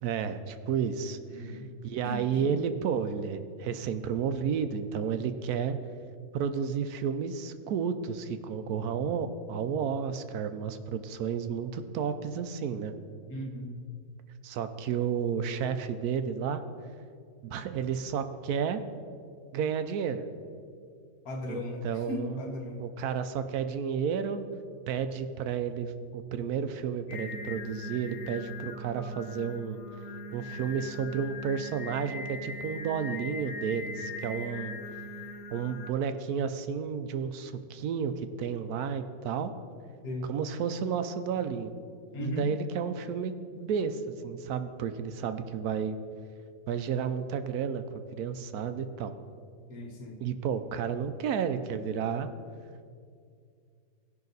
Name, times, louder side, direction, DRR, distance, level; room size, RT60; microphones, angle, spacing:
voice 1, 0.0-5.8 6.3-12.9 14.4-16.6 17.4-18.8 19.5-20.2 21.5-22.4 22.8-24.5 24.9-29.8 30.3-34.7 35.5-39.5 40.3-41.7 42.2-46.0 46.7-47.8 48.1-49.1 50.2-52.3, right 7 dB, 70° right, 9 dB, 1.0 m, -32 dB
voice 2, 1.3-1.7 2.0-2.6 13.3-13.8 21.2-22.8 40.0-40.3 42.1-42.5 49.7-50.2, left 1 dB, 60° left, 2 dB, 1.6 m, -37 dB
Singing, 27.1-35.9, left 2 dB, 75° left, 1.5 m, -41 dB
17.0 x 5.8 x 4.0 m, 2.2 s
omnidirectional pair, 1.9 m